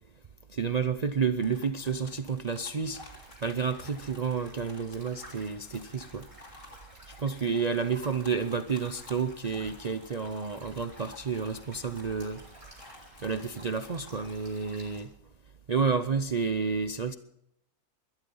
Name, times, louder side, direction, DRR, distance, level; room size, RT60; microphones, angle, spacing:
voice 1, 0.5-3.0 3.4-6.2 7.1-12.4 13.2-15.1 15.7-17.1, right 5 dB, 55° right, 10 dB, 0.4 m, -30 dB
sound 1, 1.4-14.4, left 2 dB, 50° left, 2.9 m, -54 dB
sound 2, 2.8-15.0, equal, 20° right, 7.5 m, -52 dB
21.5 x 12.0 x 5.5 m, 0.79 s
omnidirectional pair, 1.6 m